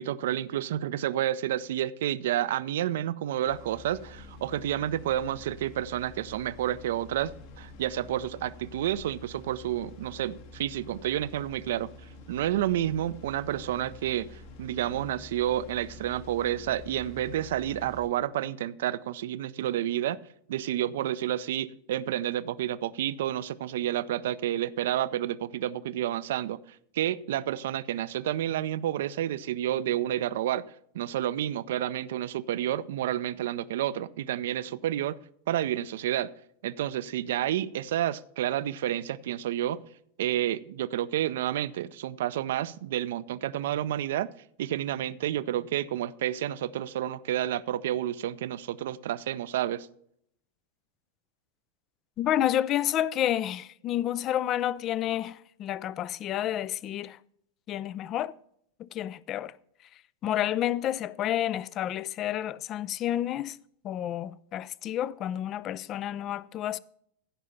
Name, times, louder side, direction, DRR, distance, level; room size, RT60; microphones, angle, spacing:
voice 1, 0.0-11.9 12.3-20.2 20.5-26.6 26.9-30.6 30.9-35.2 35.5-36.3 36.6-39.8 40.2-44.3 44.6-49.9, right 12 dB, 55° right, 0.4 m, -30 dB
sound 1, 3.5-18.1, left 2 dB, 50° left, 1.6 m, -48 dB
voice 2, 52.2-57.2 57.7-58.3 58.8-59.6 60.2-63.6 63.8-66.8, left 12 dB, 35° left, 0.4 m, -30 dB
15.5 x 5.5 x 5.6 m
figure-of-eight pair, 90°, 0 cm